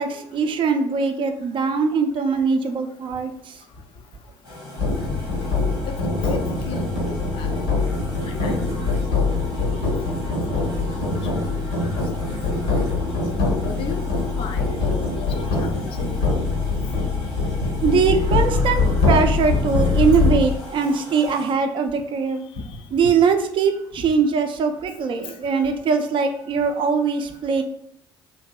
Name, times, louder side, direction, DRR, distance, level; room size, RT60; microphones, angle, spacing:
voice 1, 0.0-3.6 17.1-17.2 17.8-22.4 22.9-27.6, right 5 dB, 45° right, 6 dB, 0.4 m, -21 dB
sound 1, 4.4-21.5, left 1 dB, 90° left, 1.1 m, -39 dB
sound 2, 4.8-20.4, left 3 dB, 70° left, 0.8 m, -23 dB
voice 2, 5.9-7.6 8.3-8.8 10.0-10.1 10.5-10.6 10.9-11.0 11.9-12.4 12.8-12.9 13.6-16.1 22.7-23.1, left 4 dB, 45° left, 6 dB, 0.4 m, -36 dB
2.6 x 2.6 x 2.3 m, 0.68 s
figure-of-eight pair, 55°, 12 cm